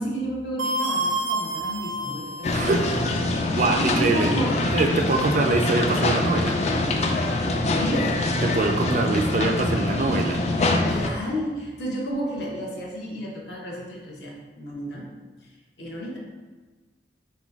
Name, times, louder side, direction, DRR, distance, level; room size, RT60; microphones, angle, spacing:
voice 1, 0.0-2.9 3.4-4.7 7.7-8.1 10.6-15.1 15.4-15.5 15.8-16.2, equal, 65° left, -4 dB, 1.0 m, -31 dB
sound 1, 0.6-3.0, right 1 dB, 85° right, 0.6 m, -28 dB
sound 2, 2.4-11.1, left 2 dB, 35° left, 0.3 m, -24 dB
voice 2, 2.5-2.8 3.3-4.3 4.7-6.6 8.4-10.4, right 3 dB, 45° right, 3 dB, 0.3 m, -24 dB
Wind instrument woodwind instrument, 2.7-9.8, left 1 dB, 85° left, 0.6 m, -43 dB
3.9 x 2.3 x 4.6 m, 1.4 s
head